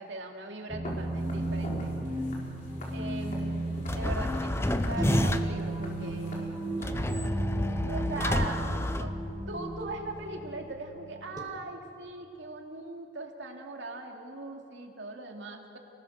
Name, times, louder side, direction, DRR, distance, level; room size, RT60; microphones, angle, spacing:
voice 1, 0.0-1.9 2.9-6.6 7.7-8.6 9.0-9.1 9.5-15.8, right 2 dB, 75° right, 2 dB, 2.7 m, -40 dB
sound 1, 0.7-11.4, right 1 dB, 20° right, 2.1 m, -34 dB
Walk footsteps, 0.8-6.9, left 1 dB, 45° left, 3.9 m, -44 dB
sound 2, 3.9-5.7 6.8-9.7, left 1 dB, 15° left, 0.7 m, -30 dB
29.5 x 19.5 x 6.5 m, 2.7 s
head